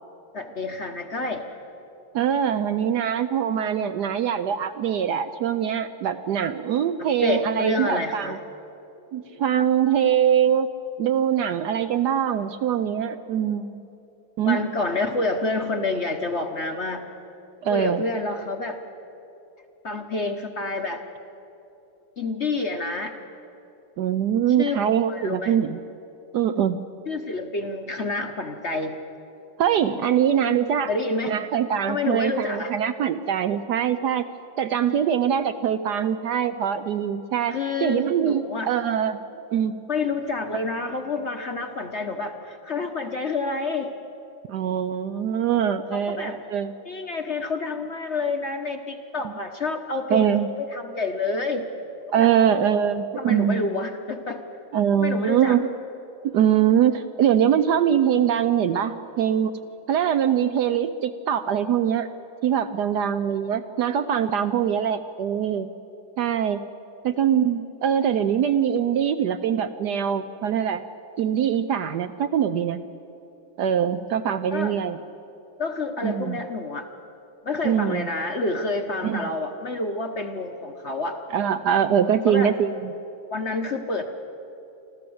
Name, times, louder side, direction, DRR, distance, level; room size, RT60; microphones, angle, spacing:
voice 1, 0.3-1.4 7.0-8.4 14.4-17.1 17.7-18.8 19.8-21.0 22.2-23.1 24.6-25.5 27.1-29.0 30.9-31.3 31.9-32.7 37.5-38.7 39.9-43.9 45.9-46.4 46.8-51.6 52.2-52.3 53.2-54.4 55.0-55.6 74.5-74.7 75.6-76.9 77.4-81.2 82.3-82.5 83.3-84.0, left 3 dB, 45° left, 5 dB, 1.0 m, -28 dB
voice 2, 2.1-8.4 9.1-10.7 11.0-13.9 14.4-14.6 17.6-18.0 24.0-25.8 26.3-26.8 29.6-30.9 31.3-34.3 34.6-39.2 39.5-39.7 44.5-46.7 49.2-49.3 50.1-50.5 52.1-53.7 54.7-55.7 56.2-59.5 59.9-62.1 62.4-65.7 66.2-66.6 67.0-70.8 71.2-72.8 73.6-75.0 76.0-76.4 77.6-78.1 79.0-79.3 81.3-82.9, right 9 dB, 70° right, 10 dB, 1.0 m, -23 dB
26.0 x 14.5 x 7.8 m, 2.9 s
omnidirectional pair, 2.2 m